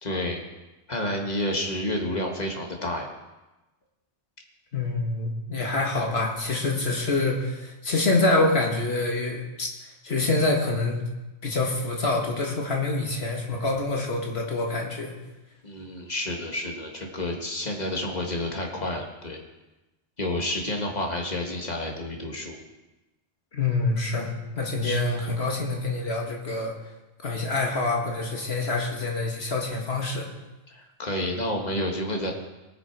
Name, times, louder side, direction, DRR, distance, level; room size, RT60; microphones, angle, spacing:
voice 1, 0.0-0.4 0.9-3.1 15.6-19.4 20.2-22.6 24.8-25.0 30.7-32.3, left 1 dB, 35° left, 1 dB, 1.7 m, -30 dB
voice 2, 4.7-11.0 11.4-15.1 23.5-26.7 27.2-30.3, left 2 dB, 60° left, 0 dB, 1.9 m, -26 dB
19.0 x 6.4 x 4.6 m, 1.1 s
omnidirectional pair, 1.2 m